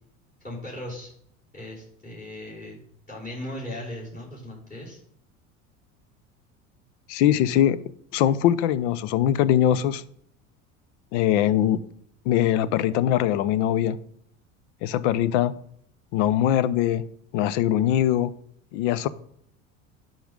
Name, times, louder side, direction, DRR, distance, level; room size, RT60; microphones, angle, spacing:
voice 1, 0.4-1.1 1.5-2.8 3.1-5.0, left 1 dB, 20° left, -4 dB, 3.4 m, -37 dB
voice 2, 7.1-7.8 8.1-10.0 11.1-11.8 12.3-14.0 14.8-15.6 16.1-17.0 17.3-18.3 18.7-19.1, left 11 dB, 60° left, 18 dB, 0.6 m, -22 dB
10.0 x 5.4 x 3.6 m, 0.69 s
hypercardioid pair, 75°, 40 cm